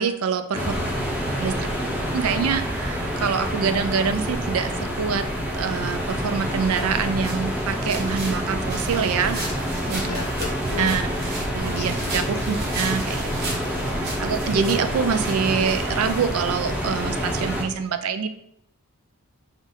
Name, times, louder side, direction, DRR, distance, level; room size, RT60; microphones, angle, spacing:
voice 1, 0.0-0.6 1.4-1.5 2.1-4.7 5.0-5.2 5.5-9.4 9.9-10.0 10.8-11.0 11.5-13.7 14.2-18.3, right 6 dB, 70° right, 10 dB, 0.4 m, -25 dB
voice 2, 0.5-1.9 9.8-11.0 11.6-12.5, left 6 dB, 80° left, 7 dB, 0.5 m, -37 dB
sound 1, 0.5-17.6, equal, 5° right, 0.7 m, -27 dB
sound 2, 6.7-16.7, right 2 dB, 45° right, 1.1 m, -36 dB
5.2 x 2.5 x 4.0 m, 0.75 s
head